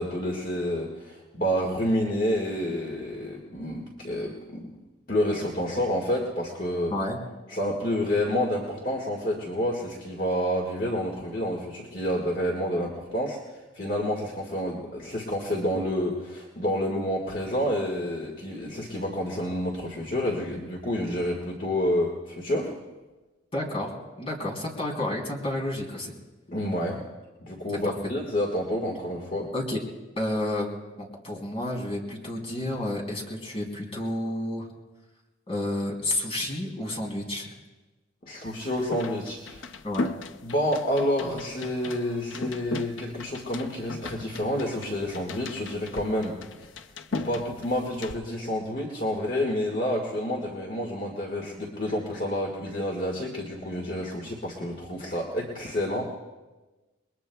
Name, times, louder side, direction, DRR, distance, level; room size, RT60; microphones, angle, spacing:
voice 1, 0.0-4.7 5.1-6.9 7.5-13.4 13.7-22.7 26.5-27.0 27.4-29.5 38.2-39.7 40.4-46.4 47.1-56.1, equal, 45° left, -1 dB, 1.8 m, -29 dB
voice 2, 23.5-26.1 27.7-27.9 29.5-29.8 30.2-30.7 31.0-34.7 35.5-37.5 39.8-40.1, left 1 dB, 30° left, -1 dB, 3.2 m, -30 dB
sound 1, 38.4-48.2, left 3 dB, 90° left, 0.6 m, -37 dB
29.0 x 21.5 x 2.3 m, 1.2 s
head